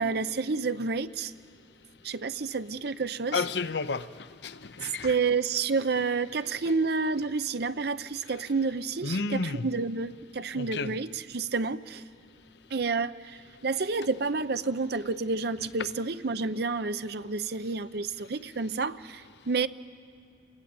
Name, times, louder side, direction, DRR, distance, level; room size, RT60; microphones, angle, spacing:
voice 1, 0.0-1.3 2.0-3.4 5.0-12.0 12.7-19.7, right 4 dB, 60° right, 0.7 m, -29 dB
voice 2, 3.3-4.1 4.4-5.1 9.0-9.6 10.5-10.9, left 4 dB, 65° left, 0.7 m, -31 dB
30.0 x 22.5 x 8.7 m
head